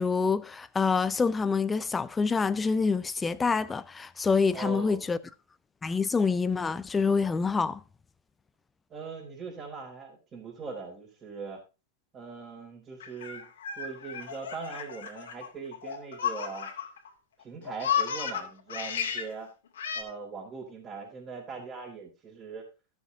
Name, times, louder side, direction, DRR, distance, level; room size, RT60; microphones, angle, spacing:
voice 1, 0.0-5.2 5.8-7.8, left 5 dB, 15° left, 0.5 m, -26 dB
voice 2, 4.5-5.1 8.9-11.6 12.1-13.5 13.8-16.7 17.4-19.5 19.9-22.7, right 5 dB, 25° right, 3.9 m, -41 dB
Laughter, 13.0-17.1 17.4-19.3 19.8-20.0, left 8 dB, 85° left, 2.5 m, -33 dB
13.0 x 7.1 x 3.8 m
hypercardioid pair, 125°, 0 cm